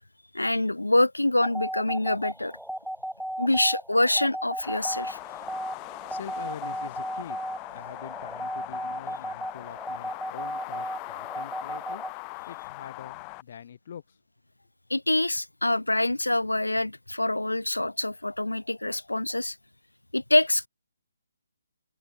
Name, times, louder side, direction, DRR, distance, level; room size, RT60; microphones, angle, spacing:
voice 1, 0.3-2.5 3.4-5.2 14.9-19.6 20.1-20.7, left 1 dB, 90° left, 0.3 m, -25 dB
sound 1, 1.4-12.1, right 1 dB, ahead, 0.4 m, -35 dB
nice wind seamless loop, 4.6-13.4, left 38 dB, 25° left, 1.3 m, -41 dB
voice 2, 6.1-7.4 7.7-12.0 12.5-14.2, left 8 dB, 45° left, 4.7 m, -44 dB
figure-of-eight pair, 140°, 0 cm